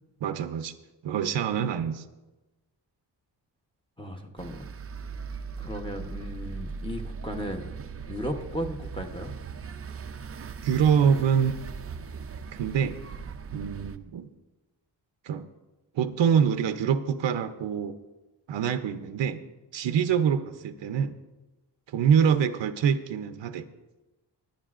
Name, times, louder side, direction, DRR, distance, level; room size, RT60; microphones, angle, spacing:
voice 1, 0.2-0.7 1.0-2.0 10.6-11.5 12.5-13.0 13.5-14.3 15.3-15.5 15.9-18.0 18.5-19.4 19.7-21.2 21.9-23.7, right 7 dB, 85° right, 9 dB, 0.7 m, -25 dB
voice 2, 4.0-4.7 5.6-7.7 8.1-9.3, equal, 10° left, 3 dB, 0.8 m, -35 dB
sound 1, 4.4-14.0, right 5 dB, 35° right, 0.4 m, -39 dB
19.0 x 10.5 x 2.5 m, 1.1 s
wide cardioid pair, 155°, 43 cm